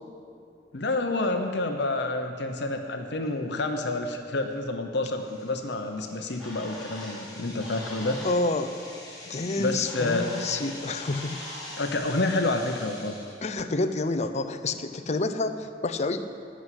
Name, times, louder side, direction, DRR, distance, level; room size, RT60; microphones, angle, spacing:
voice 1, 0.7-8.2 9.6-10.3 11.8-13.1, left 2 dB, 65° left, 4 dB, 0.9 m, -28 dB
sound 1, 3.2-3.3 3.9-4.1 4.5-4.6 5.1-13.5, left 2 dB, 20° left, 4.2 m, -45 dB
Bird, 6.0-11.9, left 1 dB, ahead, 4.2 m, -43 dB
voice 2, 8.2-8.8 9.3-11.4 13.4-16.2, left 2 dB, 40° left, 8 dB, 0.7 m, -28 dB
15.5 x 6.3 x 9.8 m, 2.5 s
head